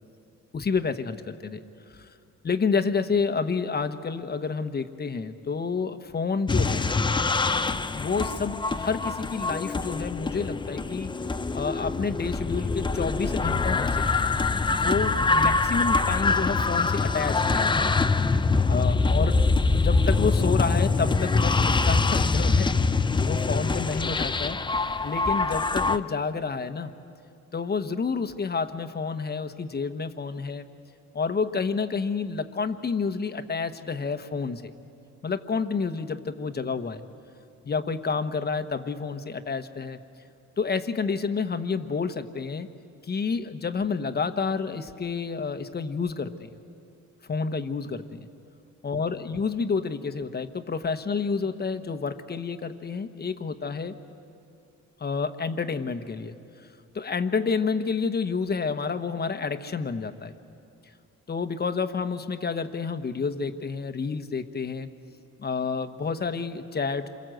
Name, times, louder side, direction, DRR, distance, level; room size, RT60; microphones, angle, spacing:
voice 1, 0.5-1.6 2.0-2.1 2.4-6.9 7.9-11.1 11.5-14.1 14.7-17.9 18.7-22.7 23.2-24.6 25.0-26.9 27.5-30.7 31.1-34.7 35.2-37.0 37.6-40.0 40.6-42.7 43.1-46.5 47.3-48.3 48.8-53.9 55.0-56.4 56.9-60.3 61.3-64.9 65.4-67.1, left 5 dB, 30° left, 8 dB, 1.1 m, -29 dB
sound 1, 6.5-26.0, left 3 dB, 15° left, 0.6 m, -24 dB
27.5 x 23.5 x 7.8 m, 2.5 s
cardioid pair, 115°, 31 cm